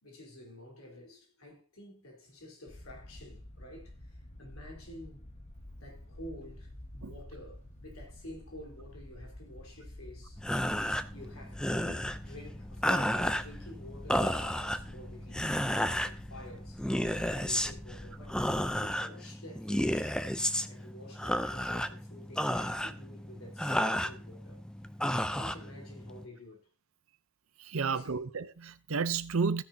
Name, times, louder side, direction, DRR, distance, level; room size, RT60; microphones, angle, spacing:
voice 1, 0.0-5.2 5.8-10.5 11.1-18.5 18.8-20.2 20.7-24.6 25.1-26.6 27.8-28.3, left 1 dB, 75° left, 4.0 m, -50 dB
sound 1, 2.7-18.8, left 1 dB, 35° left, 1.4 m, -49 dB
sound 2, 10.4-26.3, equal, 5° left, 0.6 m, -33 dB
voice 2, 27.7-29.6, right 5 dB, 70° right, 0.7 m, -31 dB
15.5 x 9.9 x 2.8 m
head